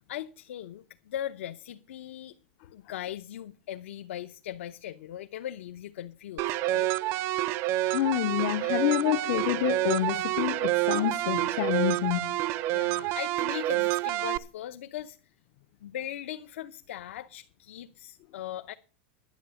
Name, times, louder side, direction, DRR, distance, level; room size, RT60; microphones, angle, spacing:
voice 1, 0.0-2.3 2.7-6.9 12.7-15.2 15.8-18.7, left 11 dB, 80° left, 0.7 m, -39 dB
sound 1, 6.4-14.4, right 16 dB, 35° right, 0.5 m, -28 dB
voice 2, 7.8-12.4, left 15 dB, 50° left, 0.5 m, -28 dB
11.0 x 8.4 x 6.8 m
supercardioid pair, 155°, 7 cm